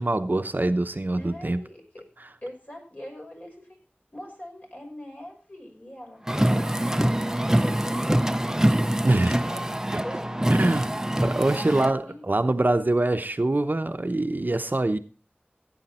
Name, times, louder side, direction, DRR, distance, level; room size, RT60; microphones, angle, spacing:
voice 1, 0.0-1.6 2.2-2.3 9.0-9.4 9.9-10.0 10.5-10.9 11.2-15.0, right 2 dB, 50° right, 9 dB, 0.8 m, -24 dB
voice 2, 1.2-2.0 2.4-3.8 4.1-6.2 6.6-8.9 9.4-9.6 10.0-10.9 11.6-12.3, left 1 dB, 45° left, 1 dB, 5.9 m, -42 dB
Car, 6.3-11.9, right 1 dB, 15° right, 0.6 m, -24 dB
16.0 x 8.9 x 4.3 m, 0.35 s
wide cardioid pair, 45°, 4 cm